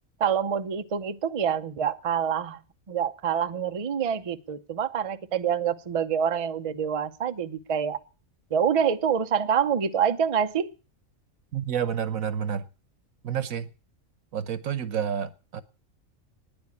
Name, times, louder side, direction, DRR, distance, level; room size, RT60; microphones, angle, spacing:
voice 1, 0.2-2.6 2.9-8.0 8.5-10.7, right 7 dB, 40° right, 0.5 m, -26 dB
voice 2, 11.5-12.6 13.2-13.7 14.3-15.6, right 8 dB, 85° right, 1.4 m, -29 dB
9.7 x 8.7 x 9.7 m
omnidirectional pair, 1.4 m